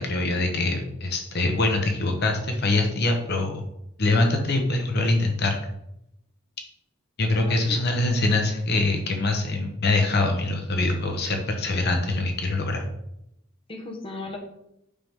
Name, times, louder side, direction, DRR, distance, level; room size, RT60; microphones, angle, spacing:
voice 1, 0.0-3.6 4.0-5.6 7.2-12.8, left 2 dB, 50° left, 3 dB, 1.0 m, -24 dB
voice 2, 7.3-7.9 13.7-14.4, left 2 dB, 25° left, 2 dB, 1.1 m, -36 dB
8.6 x 5.9 x 3.7 m, 0.82 s
head